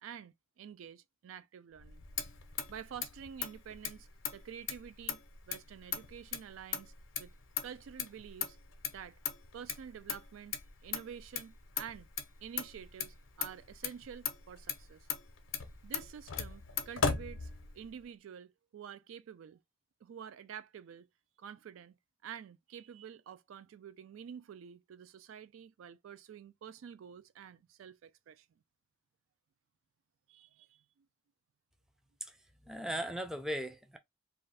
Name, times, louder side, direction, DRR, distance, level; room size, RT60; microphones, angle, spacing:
voice 1, 0.0-2.0 2.7-6.9 7.2-7.3 7.6-8.6 8.9-9.2 9.5-10.6 10.8-12.1 12.4-15.1 15.8-19.6 20.0-21.1 21.4-28.5 30.3-31.1, right 8 dB, 90° right, 0.3 m, -49 dB
Motor vehicle (road), 1.8-18.0, left 7 dB, 85° left, 0.6 m, -40 dB
voice 2, 32.6-34.0, equal, 5° right, 0.4 m, -37 dB
2.6 x 2.3 x 3.2 m
head